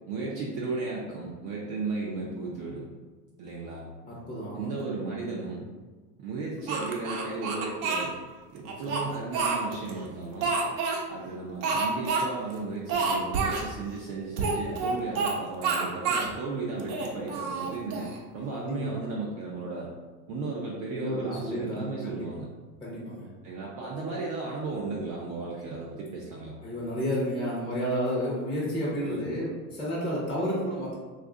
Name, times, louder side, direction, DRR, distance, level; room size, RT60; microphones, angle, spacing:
voice 1, 0.1-2.9 3.4-3.8 4.5-5.7 6.2-8.2 8.5-10.6 11.1-19.9 20.3-22.5 23.4-26.6 29.0-29.3, right 3 dB, 35° right, -4 dB, 0.4 m, -35 dB
voice 2, 4.1-4.7 8.6-9.0 18.6-19.0 20.9-22.3 22.8-23.3 26.6-30.9, equal, 10° left, -8 dB, 0.6 m, -31 dB
Speech, 6.7-8.1 8.6-9.9 10.4-11.0 11.6-12.2 12.5-12.6 12.9-13.7 14.4-15.3 15.6-16.3 16.8-18.2, right 4 dB, 70° right, 0.8 m, -28 dB
2.5 x 2.4 x 3.7 m, 1.3 s
supercardioid pair, 130°, 47 cm